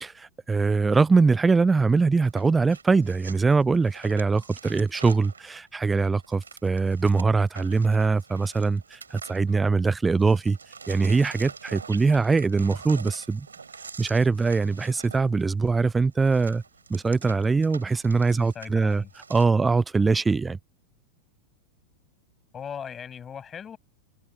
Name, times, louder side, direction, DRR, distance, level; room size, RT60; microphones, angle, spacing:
voice 1, 0.0-10.6 10.9-13.5 14.0-16.6 16.9-19.0 19.3-20.6, right 4 dB, 10° right, 0.4 m, -22 dB
sound 1, 2.2-9.9 10.2-19.5, right 5 dB, 75° right, 4.7 m, -45 dB
voice 2, 18.3-19.1 22.5-23.8, left 7 dB, 20° left, 7.6 m, -38 dB
figure-of-eight pair, 90°, 0 cm